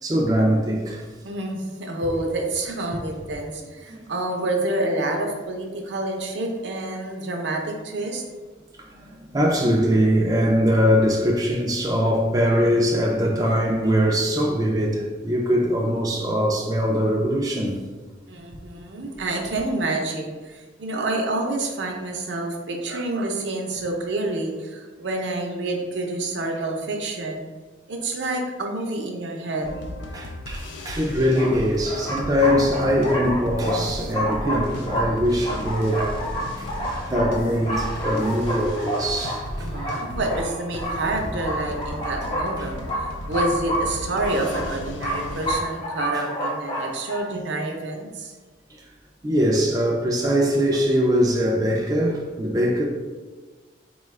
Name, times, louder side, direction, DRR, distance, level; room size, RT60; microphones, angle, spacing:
voice 1, 0.0-1.1 2.1-2.2 3.9-4.1 8.8-17.8 30.1-36.1 36.6-36.7 37.0-39.7 40.9-41.0 42.6-42.7 48.7-48.9 49.2-52.8, equal, 20° right, 0.3 m, -22 dB
voice 2, 1.2-8.2 18.3-27.4 27.9-29.8 39.6-48.3, right 2 dB, 70° right, 0.6 m, -28 dB
sound 1, 29.6-45.6, left 1 dB, 80° left, 0.4 m, -35 dB
sound 2, 30.6-30.7 31.3-47.2, equal, 25° left, 0.7 m, -30 dB
sound 3, 34.6-39.9, equal, 60° left, 0.8 m, -41 dB
4.2 x 2.3 x 3.2 m
head